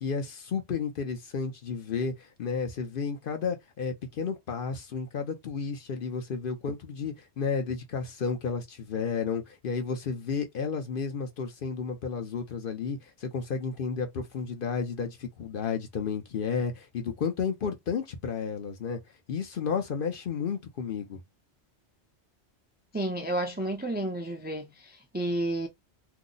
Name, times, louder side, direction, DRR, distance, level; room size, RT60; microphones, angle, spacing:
voice 1, 0.0-19.0 19.3-21.2, left 6 dB, 55° left, 0.8 m, -32 dB
voice 2, 22.9-25.7, right 1 dB, 15° right, 0.4 m, -31 dB
2.7 x 2.0 x 3.8 m
omnidirectional pair, 1.1 m